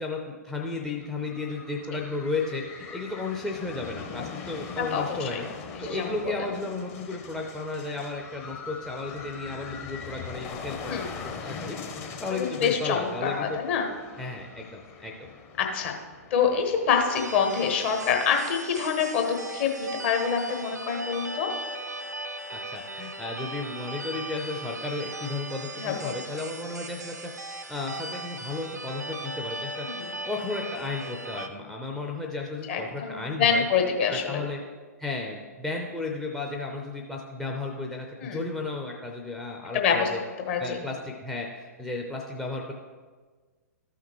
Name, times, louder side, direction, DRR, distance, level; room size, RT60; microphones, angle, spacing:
voice 1, 0.0-5.4 5.8-11.8 12.2-13.6 14.2-15.1 22.5-27.3 27.7-33.6 34.1-34.6 35.0-40.2 40.6-42.7, left 3 dB, 5° left, -1 dB, 0.6 m, -34 dB
sound 1, 0.9-18.6, left 5 dB, 25° left, 0.9 m, -42 dB
voice 2, 4.9-5.4 5.8-6.1 10.9-11.1 12.3-13.9 15.6-15.9 16.3-21.5 25.8-26.1 29.8-30.1 32.7-34.4 38.2-38.4 39.7-40.1 40.5-40.8, left 6 dB, 40° left, 3 dB, 1.2 m, -26 dB
sound 2, 17.1-31.5, right 2 dB, 80° right, 0.6 m, -38 dB
13.0 x 5.7 x 3.1 m, 1.4 s
figure-of-eight pair, 110°, 9 cm